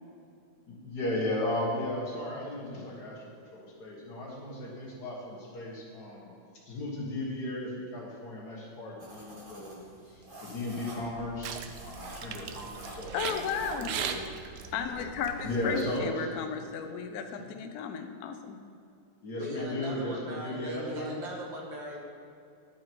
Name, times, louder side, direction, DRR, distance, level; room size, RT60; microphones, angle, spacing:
voice 1, 0.7-3.2 3.5-6.3 6.7-14.2 14.7-14.8 15.4-16.3 19.2-21.1, left 1 dB, 50° left, -3 dB, 2.0 m, -36 dB
sound 1, 9.0-14.1, right 1 dB, 30° right, 1.1 m, -48 dB
sound 2, 11.0-16.0, right 7 dB, 90° right, 0.9 m, -39 dB
voice 2, 13.1-13.9 14.7-18.6, left 7 dB, 80° left, 6 dB, 0.8 m, -34 dB
voice 3, 19.4-22.0, right 1 dB, 60° right, -1 dB, 2.0 m, -38 dB
11.0 x 5.0 x 4.5 m, 2.5 s
omnidirectional pair, 2.4 m